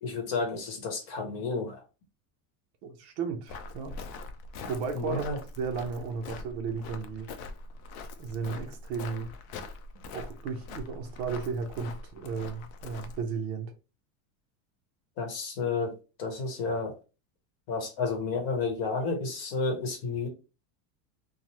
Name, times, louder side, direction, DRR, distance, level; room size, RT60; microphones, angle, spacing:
voice 1, 0.0-1.8 4.9-5.4 15.2-15.9 16.2-16.9 17.7-20.3, left 4 dB, 45° left, 0.9 m, -31 dB
voice 2, 2.8-4.0 4.7-5.3 5.6-7.3 8.2-9.3 10.1-13.7, right 5 dB, 50° right, 0.5 m, -34 dB
Walk footsteps, 3.5-13.2, left 3 dB, 60° left, 0.5 m, -43 dB
3.0 x 2.0 x 2.7 m
cardioid pair, 180°, 46 cm